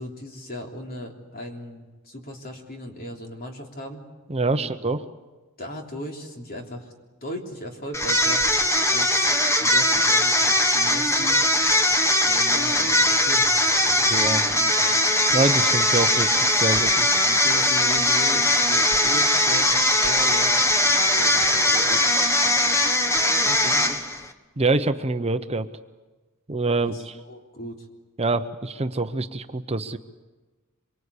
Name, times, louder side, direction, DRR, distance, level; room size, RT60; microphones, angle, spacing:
voice 1, 0.0-4.0 4.5-4.7 5.6-6.9 7.2-8.5 8.9-9.3 9.6-11.4 12.2-15.0 17.2-22.0 23.4-23.8 26.8-27.9, left 1 dB, 45° left, 2 dB, 3.3 m, -37 dB
voice 2, 4.3-5.0 14.1-14.4 15.3-17.1 24.6-25.7 26.5-27.2 28.2-30.0, right 3 dB, 30° right, 9 dB, 0.8 m, -25 dB
sound 1, 7.9-24.3, left 1 dB, 15° left, 1.4 m, -20 dB
25.5 x 24.0 x 8.4 m, 1.2 s
head